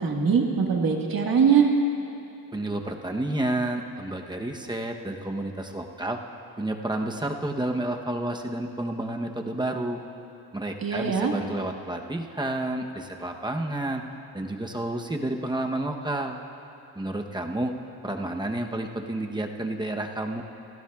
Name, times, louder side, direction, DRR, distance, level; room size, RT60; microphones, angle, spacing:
voice 1, 0.0-1.7 10.8-11.3, right 6 dB, 55° right, 0 dB, 1.7 m, -22 dB
voice 2, 2.5-6.2 6.6-10.0 10.5-14.0 14.3-16.4 16.9-17.7 18.0-20.4, right 1 dB, 10° right, 2 dB, 0.9 m, -30 dB
28.0 x 14.5 x 2.4 m, 2.9 s
wide cardioid pair, 140°, 42 cm